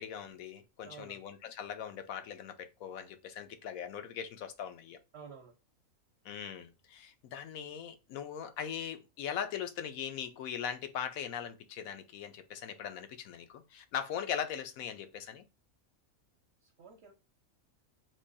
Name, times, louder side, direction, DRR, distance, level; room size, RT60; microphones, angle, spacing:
voice 1, 0.0-5.0 6.2-15.4, left 8 dB, 80° left, 1.1 m, -40 dB
voice 2, 0.8-1.2 5.1-5.5 16.6-17.1, right 5 dB, 55° right, 0.9 m, -51 dB
3.7 x 2.9 x 4.0 m
omnidirectional pair, 1.4 m